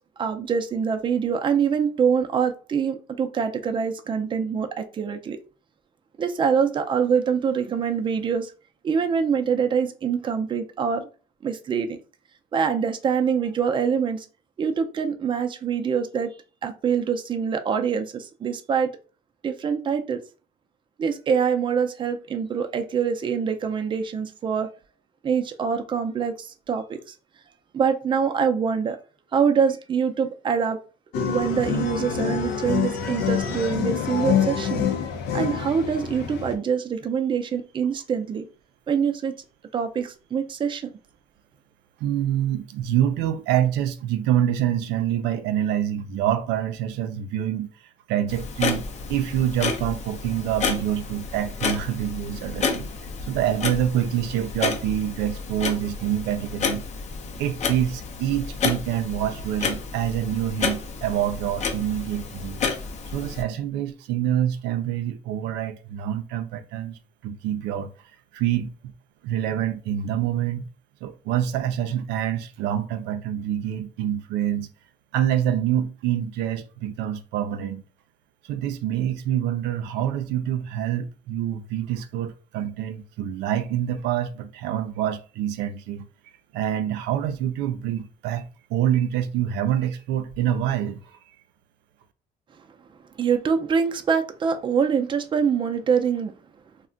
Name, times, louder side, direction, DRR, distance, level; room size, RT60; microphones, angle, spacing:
voice 1, 0.2-5.4 6.2-8.5 8.8-11.1 11.4-12.0 12.5-14.3 14.6-16.3 16.6-18.9 19.4-20.2 21.0-24.7 25.2-27.1 27.7-29.0 29.3-30.8 31.3-34.9 35.3-38.5 38.9-39.3 39.7-40.9 93.2-96.3, right 6 dB, 30° right, 0.4 m, -24 dB
sound 1, 31.1-36.5, left 8 dB, 85° left, 0.6 m, -26 dB
voice 2, 42.0-47.7 48.1-52.9 53.3-56.8 57.4-62.6 63.1-67.9 68.3-68.7 69.2-70.7 71.0-74.7 75.1-77.8 78.5-86.1 86.5-88.4 88.7-91.2, right 10 dB, 90° right, 0.4 m, -26 dB
Clock, 48.3-63.4, left 5 dB, 40° left, 0.6 m, -30 dB
2.3 x 2.1 x 3.8 m
cardioid pair, 110°, 17 cm